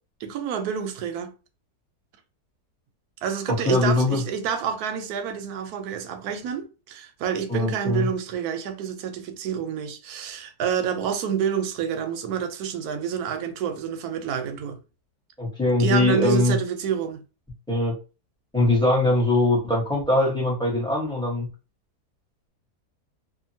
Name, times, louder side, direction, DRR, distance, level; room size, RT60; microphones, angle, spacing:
voice 1, 0.2-1.3 3.2-14.8 15.8-17.2, right 8 dB, 75° right, 1.0 m, -28 dB
voice 2, 3.5-4.2 7.5-8.1 15.4-16.6 17.7-18.0 18.5-21.5, left 2 dB, 5° left, 0.8 m, -21 dB
2.8 x 2.5 x 2.7 m
omnidirectional pair, 1.8 m